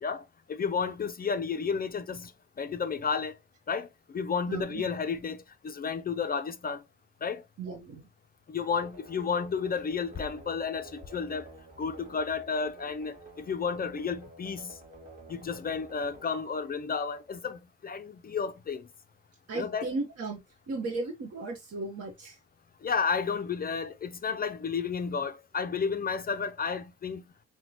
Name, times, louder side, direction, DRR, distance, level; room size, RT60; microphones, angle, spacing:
voice 1, 0.0-2.3 2.6-3.4 3.7-3.9 4.1-6.8 7.2-7.4 8.5-11.5 11.8-14.8 15.3-18.9 19.5-19.9 22.8-27.2, left 5 dB, 30° left, 0.4 m, -32 dB
voice 2, 4.5-4.8 7.6-8.0 19.5-22.4, right 3 dB, 55° right, 1.0 m, -35 dB
sound 1, 8.7-17.4, right 1 dB, 25° right, 1.5 m, -51 dB
5.8 x 2.2 x 2.8 m
cardioid pair, 90°, 30 cm